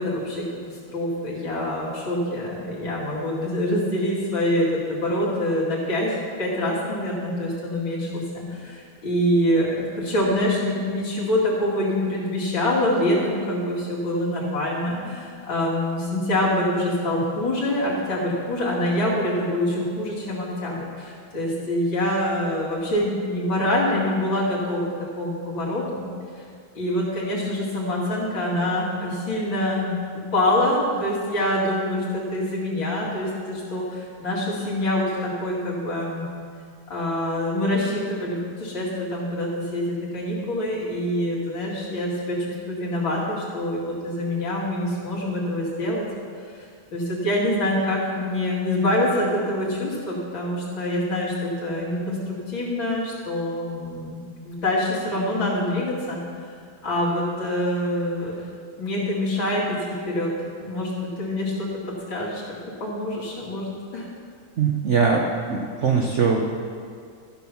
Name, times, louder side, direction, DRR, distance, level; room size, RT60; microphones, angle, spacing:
voice 1, 0.0-24.9 25.2-26.1 26.4-26.5 26.7-36.3 36.9-42.4 42.7-46.1 46.9-54.2 54.4-56.2 56.8-58.4 58.8-60.3 60.6-61.7 62.1-64.1, left 1 dB, 80° left, -6 dB, 2.9 m, -25 dB
voice 2, 64.6-66.6, right 5 dB, 65° right, 0 dB, 0.7 m, -21 dB
13.5 x 5.9 x 5.5 m, 2.2 s
omnidirectional pair, 2.1 m